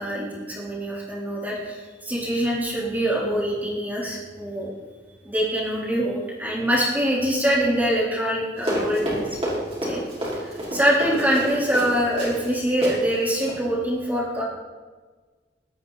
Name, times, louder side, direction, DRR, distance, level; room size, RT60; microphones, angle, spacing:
voice 1, 0.0-4.7 5.2-9.4 9.8-10.0 10.7-14.4, equal, 10° right, -5 dB, 3.9 m, -24 dB
Run, 8.6-12.5 12.8-13.0 13.3-13.6, equal, 35° right, 5.1 m, -29 dB
18.5 x 13.0 x 4.2 m, 1.4 s
head